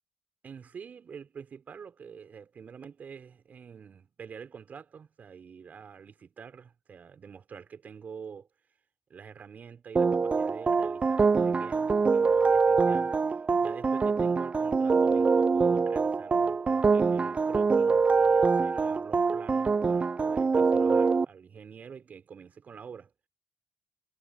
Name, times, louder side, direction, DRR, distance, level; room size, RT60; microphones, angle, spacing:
voice 1, 0.4-8.5 9.1-23.1, right 6 dB, 60° right, 5.2 m, -46 dB
sound 1, 10.0-21.3, right 4 dB, 40° right, 0.6 m, -24 dB
supercardioid pair, 50°, 3 cm